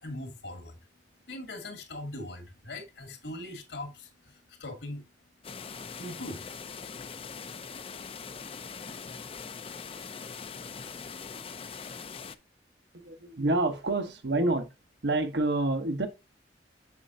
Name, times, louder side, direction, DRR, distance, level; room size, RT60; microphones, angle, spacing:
voice 1, 0.0-0.8 1.3-5.1 6.0-6.4, left 1 dB, 75° left, 2.3 m, -40 dB
sound 1, 5.4-12.3, left 5 dB, 30° left, 0.5 m, -42 dB
voice 2, 12.9-14.7 15.0-16.1, right 2 dB, 65° right, 1.1 m, -27 dB
6.8 x 6.8 x 2.7 m
head